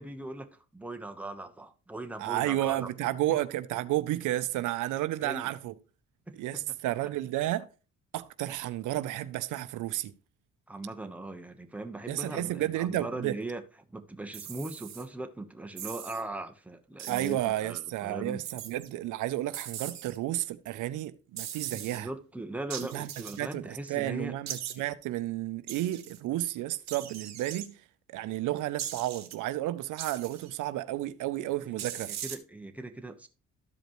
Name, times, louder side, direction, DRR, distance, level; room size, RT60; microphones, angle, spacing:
voice 1, 0.0-2.9 5.2-5.5 6.3-6.4 10.7-13.6 13.9-18.4 21.7-24.3 24.8-24.9 31.6-33.3, right 2 dB, 5° right, 1.0 m, -39 dB
voice 2, 2.2-5.7 6.3-7.7 8.1-10.1 12.1-13.4 17.1-22.1 22.9-23.1 23.4-27.8 28.1-32.1, right 15 dB, 85° right, 0.6 m, -32 dB
sound 1, 14.3-15.1 15.8-16.2 17.0-17.4 18.4-18.9 19.5-20.2 21.4-22.0 22.7-23.5 24.5-24.8 25.7-26.2 26.9-27.7 28.8-29.4 30.0-30.5 31.8-32.4, right 10 dB, 60° right, 1.2 m, -40 dB
13.0 x 5.1 x 3.1 m
cardioid pair, 90°, 30 cm